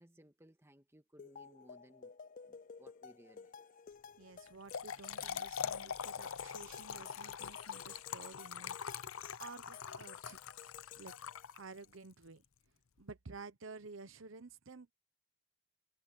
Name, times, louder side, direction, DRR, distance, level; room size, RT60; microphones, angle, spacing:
voice 1, 0.0-2.2 2.5-3.6, equal, 10° right, 1.9 m, -62 dB
sound 1, 1.2-11.8, left 7 dB, 40° left, 0.3 m, -54 dB
voice 2, 4.2-10.4 11.0-11.1 11.5-12.4 13.0-14.9, right 4 dB, 70° right, 0.9 m, -52 dB
Trickle dribble / Fill (with liquid), 4.5-11.9, left 7 dB, 85° left, 0.7 m, -43 dB
head